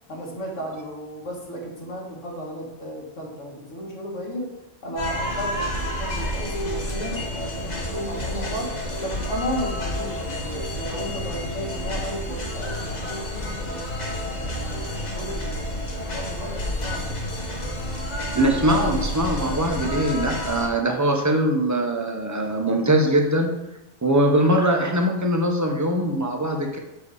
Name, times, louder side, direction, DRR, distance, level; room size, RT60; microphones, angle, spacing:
voice 1, 0.1-4.6 4.8-14.0 14.4-17.2, equal, 85° left, -1 dB, 2.0 m, -34 dB
sound 1, 5.0-20.7, equal, 40° left, 1.2 m, -30 dB
voice 2, 18.3-23.5 24.0-26.8, right 1 dB, 15° right, 2 dB, 0.9 m, -21 dB
7.1 x 4.6 x 4.9 m, 0.92 s
omnidirectional pair, 1.2 m